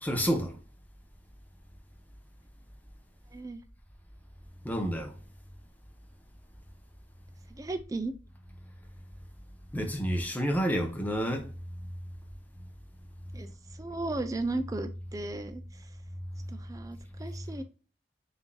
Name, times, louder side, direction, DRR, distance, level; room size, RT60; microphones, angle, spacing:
voice 1, 0.0-0.6 4.6-5.1 9.7-11.5, equal, 10° left, 0.8 m, -29 dB
voice 2, 7.5-8.1 13.3-13.5 13.8-15.6 16.5-17.6, right 2 dB, 20° right, 0.4 m, -35 dB
7.1 x 2.7 x 2.3 m
head